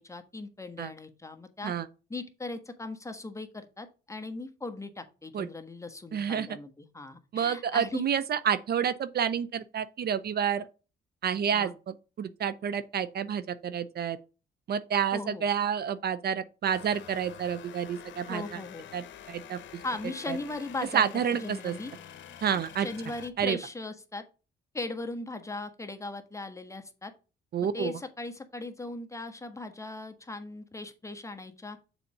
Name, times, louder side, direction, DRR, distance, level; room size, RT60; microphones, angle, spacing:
voice 1, 0.0-1.7 2.1-8.1 11.5-11.7 15.1-15.5 18.3-18.9 19.8-21.9 22.5-24.2 24.7-27.1 27.6-31.8, left 2 dB, 15° left, 1.3 m, -38 dB
voice 2, 6.1-6.5 7.3-10.7 11.2-14.2 14.7-18.4 18.9-19.6 20.3-20.4 20.9-21.7 22.4-22.9 23.4-23.6 27.5-27.9, right 8 dB, 55° right, 0.6 m, -29 dB
sound 1, 16.6-23.3, left 10 dB, 70° left, 0.9 m, -47 dB
7.0 x 4.2 x 5.4 m
cardioid pair, 90°, 20 cm